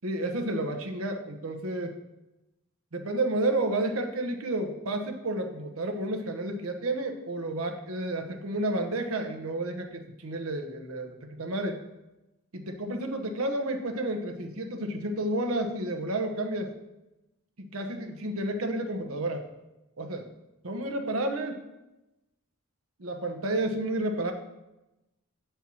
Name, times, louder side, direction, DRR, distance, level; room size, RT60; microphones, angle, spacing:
voice 1, 0.0-1.9 2.9-11.8 12.5-16.7 17.6-19.4 20.0-20.3 20.6-21.6 23.0-24.3, right 1 dB, 75° right, 6 dB, 0.9 m, -31 dB
7.1 x 4.5 x 6.0 m, 0.96 s
head